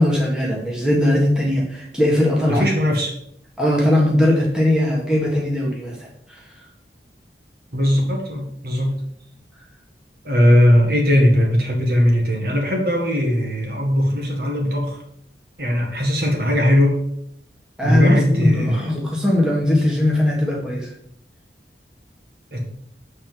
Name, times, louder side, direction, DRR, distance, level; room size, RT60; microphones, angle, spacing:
voice 1, 0.0-2.6 3.6-6.4 17.8-20.9, left 1 dB, 5° right, -4 dB, 1.6 m, -19 dB
voice 2, 2.4-3.1 7.7-9.0 10.2-15.0 15.6-17.0 17.8-18.9 22.5-22.7, equal, 55° right, 0 dB, 1.8 m, -19 dB
7.4 x 4.3 x 5.9 m, 0.69 s
head